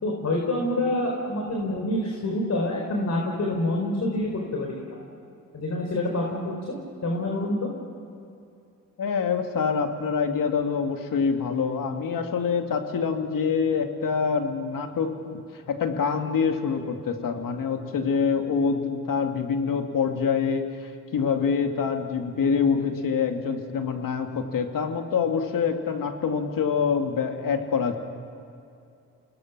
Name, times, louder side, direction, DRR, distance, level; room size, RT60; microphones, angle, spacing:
voice 1, 0.0-5.0 5.5-6.5 7.0-7.7, left 1 dB, 50° left, 0 dB, 4.3 m, -27 dB
voice 2, 9.0-15.4 15.7-28.0, left 6 dB, 65° left, 5 dB, 2.4 m, -26 dB
29.0 x 20.5 x 6.2 m, 2.5 s
supercardioid pair, 60°, 35 cm